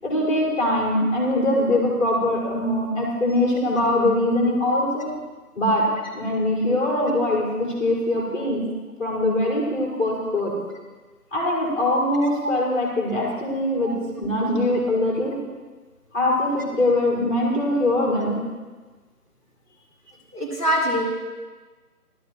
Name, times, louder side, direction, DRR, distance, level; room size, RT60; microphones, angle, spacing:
voice 1, 0.0-5.1 5.5-5.8 6.1-8.6 9.0-10.5 11.3-13.9 14.2-15.3 16.1-18.3, left 1 dB, 10° left, -10 dB, 4.6 m, -22 dB
voice 2, 20.3-21.1, equal, 20° right, -11 dB, 3.8 m, -24 dB
17.0 x 13.0 x 3.2 m, 1.3 s
figure-of-eight pair, 165°, 46 cm